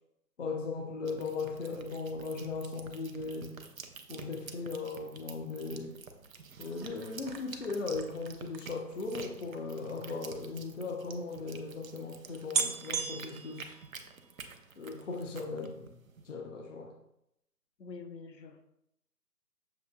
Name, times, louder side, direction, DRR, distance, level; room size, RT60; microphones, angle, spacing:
voice 1, 0.4-3.5 4.1-6.0 6.6-13.8 14.8-15.9 16.2-16.9, left 4 dB, 50° left, 3 dB, 0.6 m, -38 dB
sound 1, 1.1-16.3, right 5 dB, 60° right, 0.6 m, -49 dB
sound 2, 6.6-10.2 11.0-11.1 11.3-11.4 12.0-12.1 12.5-14.4 14.8-15.2 15.5-15.6, right 5 dB, 90° right, 0.8 m, -38 dB
voice 2, 17.8-18.6, left 4 dB, 85° left, 6 dB, 0.8 m, -46 dB
6.6 x 2.7 x 2.2 m, 0.81 s
figure-of-eight pair, 160°, 48 cm